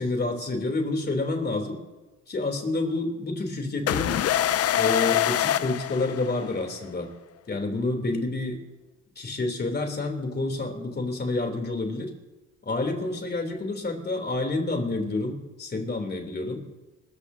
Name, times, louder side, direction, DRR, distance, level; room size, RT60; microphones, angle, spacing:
voice 1, 0.0-1.8 2.3-4.2 4.7-7.1 7.5-8.6 9.1-12.1 12.6-16.6, left 2 dB, 35° left, 3 dB, 3.3 m, -28 dB
sound 1, 3.9-6.7, left 11 dB, 55° left, 0.5 m, -25 dB
25.5 x 14.5 x 2.8 m, 1.1 s
cardioid pair, 90°, 30 cm